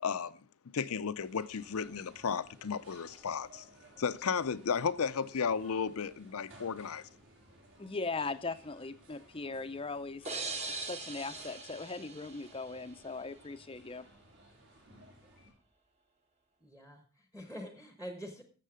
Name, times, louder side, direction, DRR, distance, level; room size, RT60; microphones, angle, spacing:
voice 1, 0.0-0.4 0.7-3.7 4.0-7.1, left 6 dB, 75° left, 0.5 m, -34 dB
sound 1, 1.2-15.5, right 1 dB, 65° right, 4.4 m, -59 dB
voice 2, 7.8-14.1, left 3 dB, 25° left, 0.5 m, -39 dB
sound 2, 10.3-13.0, right 3 dB, 30° right, 1.2 m, -41 dB
voice 3, 16.6-18.4, equal, 10° right, 1.1 m, -46 dB
12.0 x 7.6 x 5.0 m
head